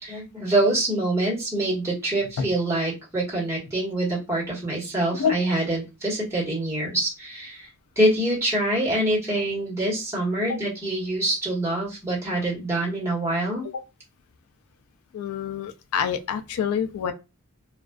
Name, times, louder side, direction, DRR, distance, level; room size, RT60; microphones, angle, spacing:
voice 1, 0.0-7.7 8.0-13.6, right 1 dB, 15° right, 1.2 m, -25 dB
voice 2, 15.1-17.1, left 7 dB, 70° left, 0.3 m, -27 dB
2.3 x 2.3 x 2.2 m
head